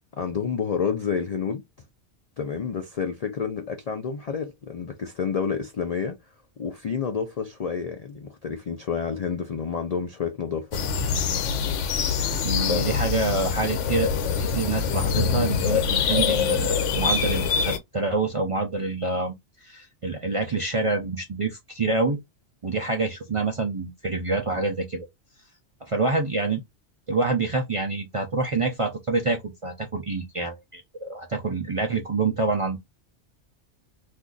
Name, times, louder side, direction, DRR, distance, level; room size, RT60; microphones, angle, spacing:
voice 1, 0.2-1.6 2.4-6.2 6.6-10.8 12.7-13.0, left 6 dB, 60° left, 0.4 m, -29 dB
sound 1, 10.7-17.8, left 6 dB, 80° left, 0.9 m, -24 dB
voice 2, 12.4-14.1 14.4-19.3 19.6-22.2 22.6-25.1 25.8-26.6 27.1-32.8, right 3 dB, 45° right, 0.4 m, -27 dB
2.6 x 2.4 x 3.7 m
omnidirectional pair, 1.2 m